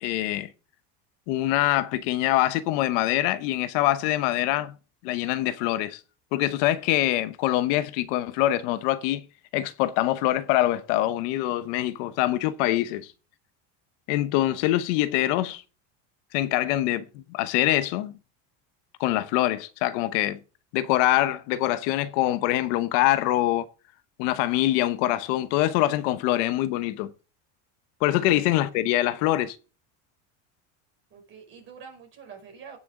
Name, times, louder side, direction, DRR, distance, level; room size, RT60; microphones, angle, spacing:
voice 1, 0.0-0.5 1.3-4.7 5.0-6.0 6.3-9.3 9.5-13.1 14.1-15.6 16.3-18.1 19.0-20.4 20.7-23.7 24.2-27.1 28.0-29.6, left 15 dB, 70° left, 1.0 m, -24 dB
voice 2, 28.1-28.4 28.7-29.1 31.1-32.8, right 6 dB, 30° right, 5.6 m, -47 dB
17.0 x 7.0 x 3.8 m
cardioid pair, 170°, 37 cm